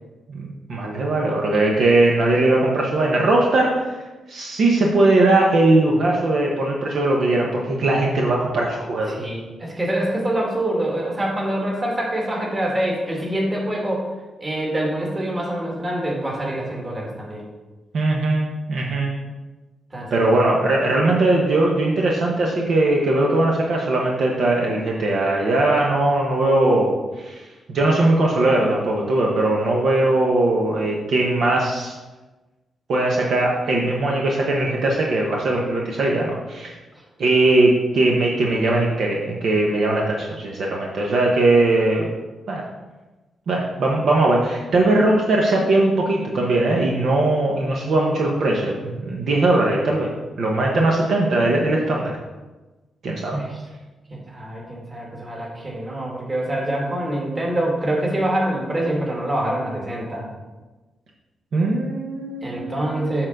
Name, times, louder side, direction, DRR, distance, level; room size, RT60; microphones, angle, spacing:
voice 1, 0.3-3.9 4.3-9.1 17.9-19.1 20.1-31.9 32.9-36.7 37.2-42.1 42.5-42.6 43.5-50.1 50.4-52.1 53.0-53.4 61.5-63.1, right 2 dB, 60° right, -1 dB, 1.1 m, -20 dB
voice 2, 9.1-14.0 14.4-17.4 19.9-20.3 53.3-53.6 54.1-60.3 62.4-63.3, right 1 dB, 25° right, -3 dB, 2.1 m, -25 dB
7.1 x 3.8 x 6.6 m, 1.2 s
wide cardioid pair, 135°, 0 cm